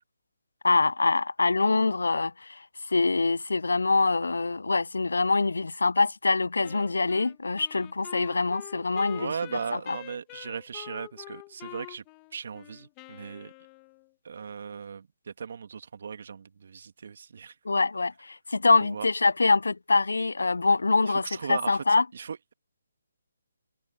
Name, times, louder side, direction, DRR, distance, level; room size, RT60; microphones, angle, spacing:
voice 1, 0.6-2.6 2.9-10.0 17.7-22.1, left 3 dB, 85° left, 0.3 m, -24 dB
Wind instrument woodwind instrument, 6.6-14.1, left 26 dB, 20° left, 1.3 m, -46 dB
voice 2, 9.1-12.0 12.3-13.5 14.2-17.5 18.8-19.1 21.1-21.8 22.1-22.5, right 6 dB, 60° right, 2.4 m, -37 dB
hypercardioid pair, 155°, 0 cm